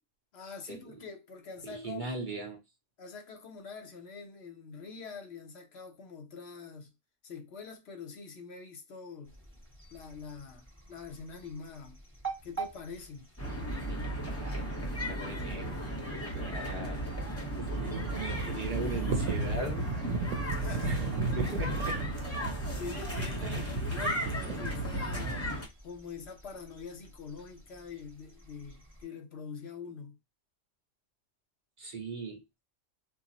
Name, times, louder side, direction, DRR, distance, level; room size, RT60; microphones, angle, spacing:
voice 1, 0.3-2.1 3.0-6.9 7.2-9.4 9.9-12.0 12.4-13.3 20.5-21.6 22.8-25.6 25.8-30.2, left 5 dB, 65° left, 0.9 m, -45 dB
voice 2, 1.6-2.6 13.9-14.8 15.1-17.1 17.6-19.9 20.8-22.1 23.4-23.7 31.8-32.6, right 2 dB, 45° right, 0.7 m, -39 dB
sound 1, 9.2-29.0, right 5 dB, 10° right, 1.0 m, -50 dB
sound 2, 13.4-25.7, right 1 dB, 15° left, 0.7 m, -35 dB
sound 3, 17.7-25.5, right 3 dB, 85° right, 0.9 m, -35 dB
2.3 x 2.0 x 3.8 m
omnidirectional pair, 1.3 m